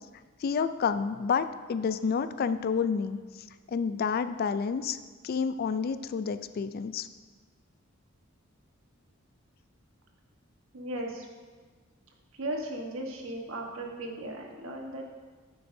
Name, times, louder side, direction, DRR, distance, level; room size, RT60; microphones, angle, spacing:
voice 1, 0.4-3.2 3.7-5.0 5.2-7.1, left 6 dB, 45° left, 12 dB, 0.3 m, -29 dB
voice 2, 10.7-11.3 12.4-15.0, right 1 dB, 75° right, 1 dB, 1.3 m, -36 dB
10.0 x 7.9 x 2.7 m, 1.5 s
head